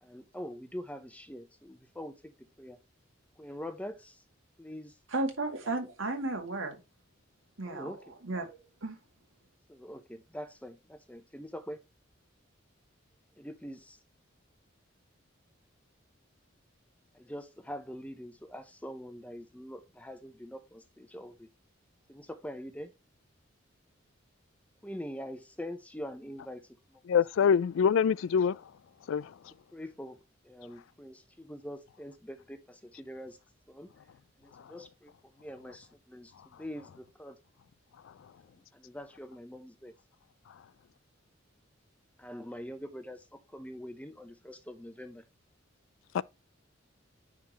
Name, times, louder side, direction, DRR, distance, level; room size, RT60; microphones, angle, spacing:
voice 1, 0.0-2.8 3.4-4.2 4.6-4.9 7.6-8.0 9.7-11.8 13.4-14.0 17.1-21.5 22.1-22.9 24.8-26.6 29.7-30.2 30.4-33.4 33.7-33.9 34.4-35.1 35.4-37.4 38.7-39.9 42.2-45.2, equal, 5° left, 0.7 m, -44 dB
voice 2, 5.1-6.8 7.6-8.0 8.2-9.0, right 2 dB, 80° right, 2.1 m, -34 dB
voice 3, 27.1-28.6 29.1-29.3 46.1-46.2, left 7 dB, 75° left, 0.3 m, -24 dB
9.5 x 3.8 x 3.0 m
head